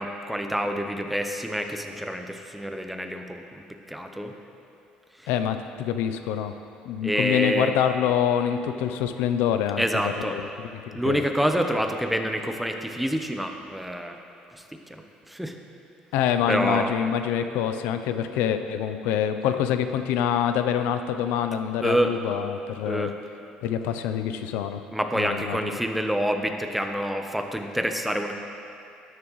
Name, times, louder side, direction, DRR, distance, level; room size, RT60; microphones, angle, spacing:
voice 1, 0.0-4.3 7.0-7.8 9.8-10.4 10.9-14.2 14.9-15.5 16.5-16.9 21.8-22.1 22.9-23.1 24.9-28.3, equal, 5° right, 5 dB, 0.8 m, -27 dB
voice 2, 5.3-6.5 6.8-11.2 16.1-23.1 23.6-24.8 25.1-25.6, left 9 dB, 85° left, 9 dB, 0.5 m, -26 dB
13.0 x 11.0 x 3.1 m, 2.6 s
cardioid pair, 95°, 3 cm